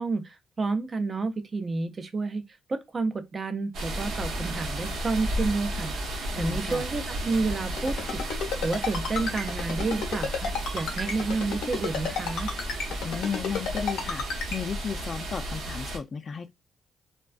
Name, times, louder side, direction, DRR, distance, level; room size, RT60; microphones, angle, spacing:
voice 1, 0.0-2.4 2.7-5.9 6.4-8.2 8.6-12.5, right 3 dB, 35° right, 0.5 m, -30 dB
sound 1, 3.7-16.0, right 1 dB, 85° right, 0.7 m, -33 dB
voice 2, 6.3-6.8 13.0-14.3 14.5-16.5, left 6 dB, 45° left, 0.3 m, -34 dB
Ringtone, 7.8-14.6, left 5 dB, 90° left, 0.8 m, -31 dB
2.3 x 2.2 x 2.4 m
cardioid pair, 90°, 0 cm